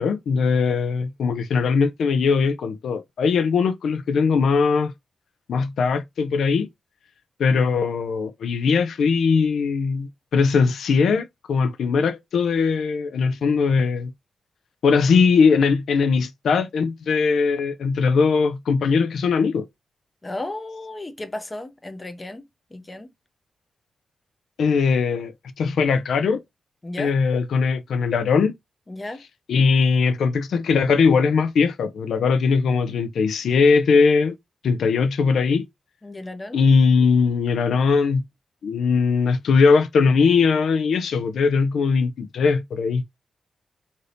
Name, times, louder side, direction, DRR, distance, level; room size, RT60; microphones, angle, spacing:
voice 1, 0.0-4.9 5.5-6.7 7.4-14.1 14.8-19.7 24.6-26.4 27.0-28.5 29.5-34.4 34.6-35.7 36.5-38.2 38.6-43.0, left 5 dB, 80° left, 0.3 m, -20 dB
voice 2, 20.2-23.1 26.8-27.1 28.9-29.2 36.0-36.6, left 2 dB, 20° left, 0.5 m, -34 dB
2.6 x 2.6 x 3.2 m
wide cardioid pair, 135°, 0 cm